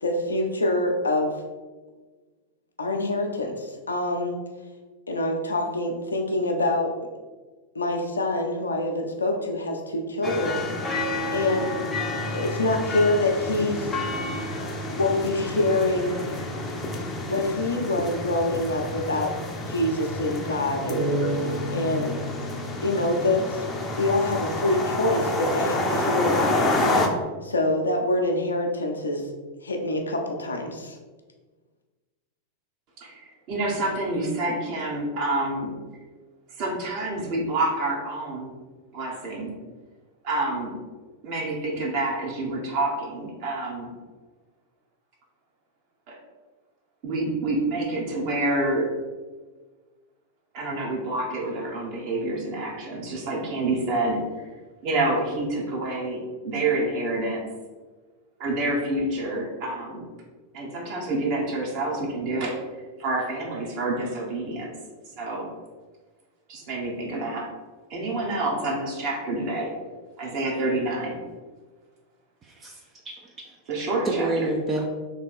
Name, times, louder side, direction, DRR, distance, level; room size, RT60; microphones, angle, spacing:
voice 1, 0.0-1.4 2.8-4.4 5.1-6.9 7.7-10.6 11.3-11.7 12.3-13.9 15.0-16.2 17.3-19.3 19.7-21.2 21.7-22.2 22.8-23.6 23.9-26.7 27.4-29.2 29.6-31.0, left 2 dB, 75° left, 2 dB, 0.6 m, -25 dB
sound 1, 10.2-27.1, left 2 dB, 20° left, 0.6 m, -29 dB
sound 2, 20.9-24.3, right 1 dB, 65° right, 1.2 m, -31 dB
voice 2, 33.0-35.7 36.6-38.5 38.9-39.5 40.2-40.7 41.2-43.9 46.1-46.2 47.0-48.9 50.5-54.2 54.8-57.4 58.4-60.1 60.5-62.6 63.0-64.7 65.1-65.5 66.5-67.5 67.9-69.7 70.2-71.2 73.7-74.5, right 2 dB, 45° right, -2 dB, 1.2 m, -28 dB
voice 3, 72.4-73.6 74.0-74.9, right 2 dB, 25° right, 1 dB, 0.5 m, -29 dB
3.4 x 3.0 x 4.3 m, 1.3 s
figure-of-eight pair, 90°, 0 cm